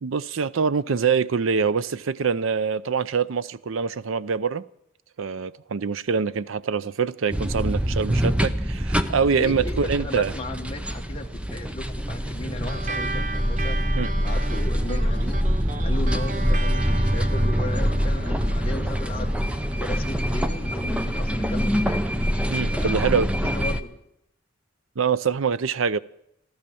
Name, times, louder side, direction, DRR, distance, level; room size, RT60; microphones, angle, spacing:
voice 1, 0.0-4.6 5.2-10.3 14.0-14.1 22.5-23.3 25.0-26.0, right 5 dB, 75° right, 0.5 m, -24 dB
sound 1, 7.3-23.8, equal, 5° right, 0.6 m, -25 dB
voice 2, 9.3-13.8 14.1-15.4 15.8-19.5 19.8-22.1 22.7-24.0, left 2 dB, 30° left, 1.5 m, -36 dB
sound 2, 12.7-21.5, right 3 dB, 40° right, 0.8 m, -37 dB
15.0 x 13.0 x 7.0 m
head